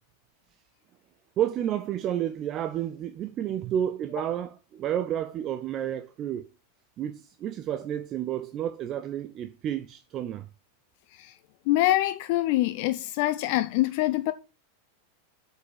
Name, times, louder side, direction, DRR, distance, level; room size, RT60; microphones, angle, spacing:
voice 1, 1.4-6.4 7.0-10.5, right 10 dB, 30° right, 0.5 m, -30 dB
voice 2, 11.7-14.3, left 16 dB, 45° left, 0.5 m, -25 dB
7.7 x 5.4 x 4.8 m
figure-of-eight pair, 90°, 0 cm